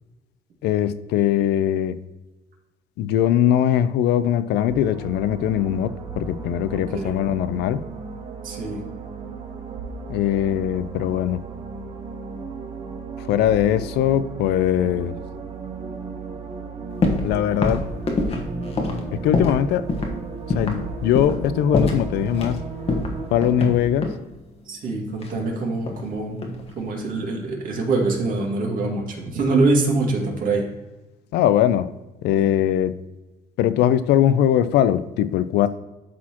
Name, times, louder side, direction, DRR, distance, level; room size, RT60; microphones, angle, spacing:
voice 1, 0.6-2.0 3.0-7.8 10.1-11.4 13.2-15.2 17.2-17.8 19.1-19.9 20.5-22.6 23.3-24.1 31.3-31.9 32.2-32.9 33.6-35.7, left 10 dB, 80° left, 14 dB, 0.4 m, -21 dB
sound 1, 4.7-23.7, right 4 dB, 35° right, 1.2 m, -35 dB
voice 2, 6.7-7.2 8.4-8.8 18.3-18.8 24.7-26.4 26.8-30.7 32.4-32.5, right 3 dB, 55° right, 0 dB, 2.0 m, -24 dB
sound 2, 17.0-17.3 17.6-19.6 19.9-20.1 20.5-20.8 21.2-21.4 21.7-22.6 22.9-24.2 25.2-26.1 26.4-26.8, left 3 dB, 35° left, 1.2 m, -25 dB
12.0 x 4.2 x 2.9 m, 1.1 s
cardioid pair, 110°, 17 cm